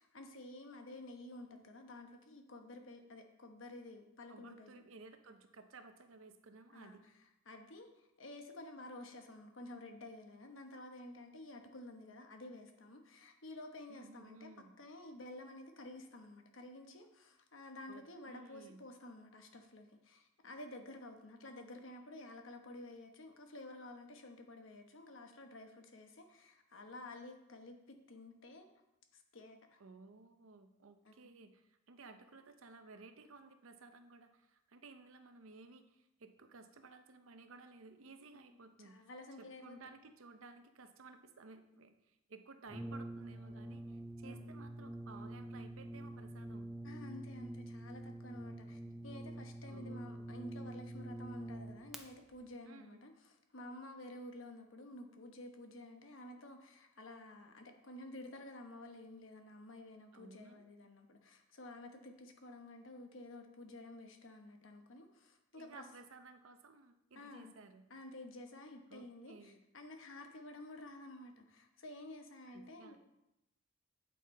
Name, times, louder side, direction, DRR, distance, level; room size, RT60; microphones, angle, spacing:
voice 1, 0.0-4.8 6.7-7.0 7.5-14.5 14.8-28.7 29.1-29.8 31.0-31.1 38.8-39.9 44.2-44.5 46.8-53.1 53.5-65.8 67.1-67.5 67.9-73.1, left 1 dB, 70° left, 5 dB, 1.0 m, -52 dB
voice 2, 4.3-7.0 13.9-14.7 17.9-18.8 29.8-39.1 39.4-46.7 49.7-50.3 52.6-53.1 60.1-60.6 65.5-67.8 68.9-69.6 72.5-73.0, right 3 dB, 80° right, 8 dB, 0.7 m, -57 dB
Brass instrument, 42.7-52.0, right 1 dB, ahead, 0.5 m, -46 dB
8.4 x 5.6 x 4.2 m, 0.88 s
head